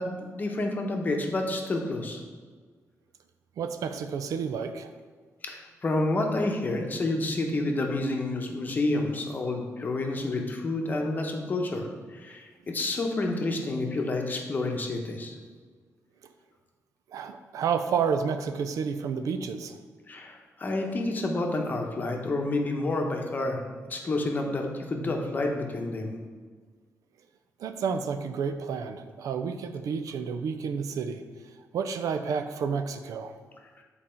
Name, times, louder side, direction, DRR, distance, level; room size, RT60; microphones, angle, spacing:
voice 1, 0.0-2.2 5.4-15.4 20.1-23.6 23.9-26.1 33.8-33.9, left 2 dB, 30° left, 2 dB, 0.9 m, -29 dB
voice 2, 3.6-4.9 17.1-19.8 27.6-31.2 31.7-33.3, right 6 dB, 80° right, 8 dB, 0.5 m, -30 dB
7.5 x 4.2 x 4.4 m, 1.5 s
wide cardioid pair, 140°, 6 cm